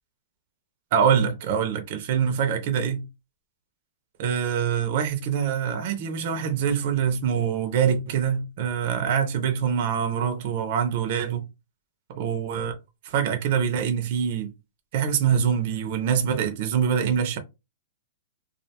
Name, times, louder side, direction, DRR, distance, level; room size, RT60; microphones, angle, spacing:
voice 1, 0.9-3.0 4.2-11.5 12.1-12.8 13.0-14.5 14.9-17.4, right 7 dB, 45° right, 0.4 m, -24 dB
2.4 x 2.1 x 2.7 m
hypercardioid pair, 160°, 0 cm